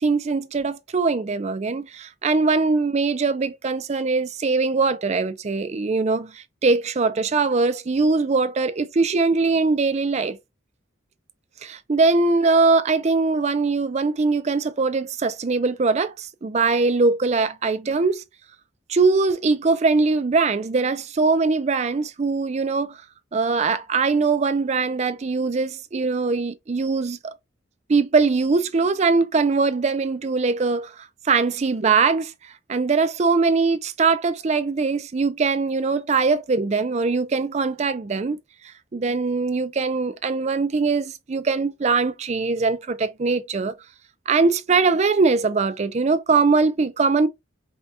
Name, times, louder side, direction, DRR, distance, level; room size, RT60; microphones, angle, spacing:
voice 1, 0.0-10.4 11.6-18.2 18.9-23.0 23.3-27.3 27.9-30.9 31.2-32.3 32.7-38.4 38.9-43.7 44.3-47.3, right 4 dB, 35° right, 0.4 m, -21 dB
5.2 x 2.3 x 2.6 m
head